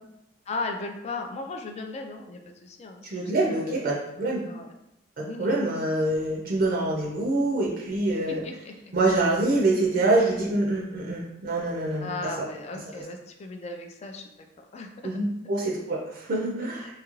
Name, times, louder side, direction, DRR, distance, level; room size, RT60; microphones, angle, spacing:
voice 1, 0.5-3.8 4.5-4.7 5.2-5.7 8.1-8.7 12.0-14.3 14.6-15.2 16.7-16.9, left 3 dB, 35° left, 4 dB, 0.3 m, -37 dB
voice 2, 3.0-4.4 5.2-8.5 8.9-12.5 15.0-16.9, right 2 dB, 50° right, -2 dB, 0.5 m, -25 dB
2.7 x 2.4 x 3.0 m, 0.88 s
head